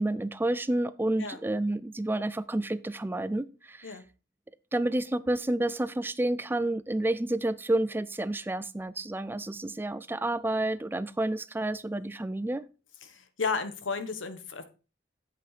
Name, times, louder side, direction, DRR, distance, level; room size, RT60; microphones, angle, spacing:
voice 1, 0.0-4.0 4.7-12.6, right 1 dB, 10° right, 15 dB, 0.4 m, -30 dB
voice 2, 13.0-14.6, left 4 dB, 85° left, 10 dB, 1.2 m, -33 dB
7.8 x 7.8 x 4.2 m, 0.33 s
head